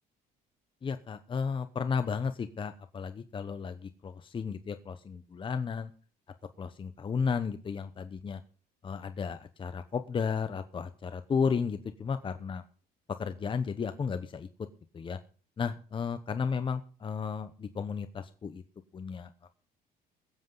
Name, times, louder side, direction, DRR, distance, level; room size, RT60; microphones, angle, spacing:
voice 1, 0.8-5.9 6.6-8.4 8.8-12.6 13.1-14.5 14.9-15.2 15.6-18.6 18.9-19.5, left 6 dB, 30° left, 10 dB, 0.9 m, -33 dB
22.0 x 7.9 x 3.9 m, 0.39 s
cardioid pair, 110°, 17 cm